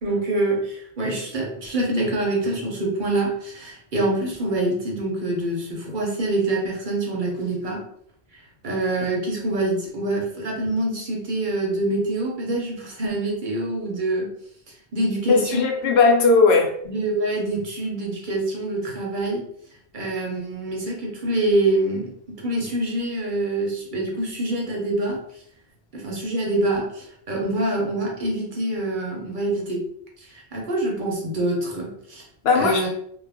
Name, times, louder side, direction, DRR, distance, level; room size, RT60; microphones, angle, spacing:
voice 1, 0.0-7.8 8.6-14.3 14.9-15.7 16.8-19.4 19.9-25.2 25.9-29.8 30.2-32.2 32.5-32.9, right 2 dB, 50° right, 0.8 m, -25 dB
voice 2, 15.3-16.7 32.4-32.9, left 4 dB, 75° left, 0.8 m, -17 dB
2.4 x 2.0 x 3.4 m
omnidirectional pair, 1.1 m